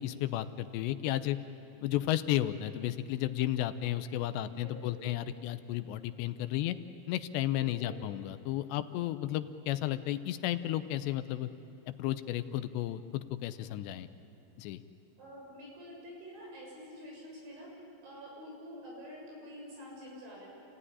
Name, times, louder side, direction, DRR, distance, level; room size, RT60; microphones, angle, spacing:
voice 1, 0.0-1.4 1.8-6.8 7.1-11.5 11.9-14.1 14.6-14.8, left 13 dB, 80° left, 11 dB, 2.8 m, -33 dB
voice 2, 4.5-5.0 7.7-8.0 15.2-17.7 18.0-20.5, equal, 85° right, -3 dB, 9.2 m, -48 dB
29.5 x 16.5 x 9.9 m, 2.9 s
omnidirectional pair, 5.2 m